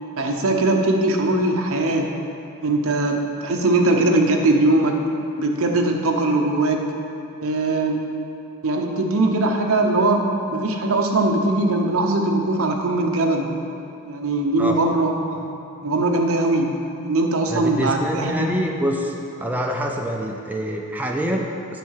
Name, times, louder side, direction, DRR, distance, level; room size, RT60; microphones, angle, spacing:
voice 1, 0.2-2.1 2.6-5.0 5.4-6.9 7.4-8.0 8.6-13.5 14.0-15.5 15.8-16.7 17.0-18.5, right 2 dB, 65° right, 2 dB, 0.9 m, -20 dB
voice 2, 17.5-19.1 19.4-21.8, equal, 10° right, 0 dB, 0.5 m, -26 dB
9.4 x 4.7 x 7.2 m, 2.7 s
head